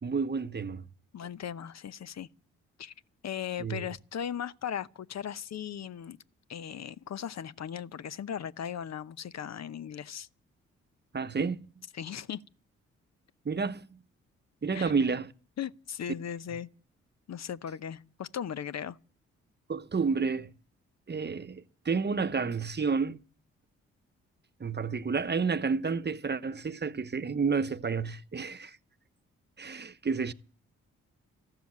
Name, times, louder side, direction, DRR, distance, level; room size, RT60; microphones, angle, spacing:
voice 1, 0.0-0.8 3.6-3.9 11.1-11.8 13.4-14.0 14.6-15.3 19.7-20.5 21.1-23.2 24.6-28.8 29.6-30.3, right 5 dB, 30° right, 1.0 m, -30 dB
voice 2, 1.1-2.3 2.8-2.9 3.2-6.2 6.5-10.3 11.9-12.4 14.7-14.8 15.6-16.7 17.3-19.0, left 9 dB, 55° left, 0.8 m, -37 dB
14.0 x 12.5 x 7.7 m
hypercardioid pair, 40°, 33 cm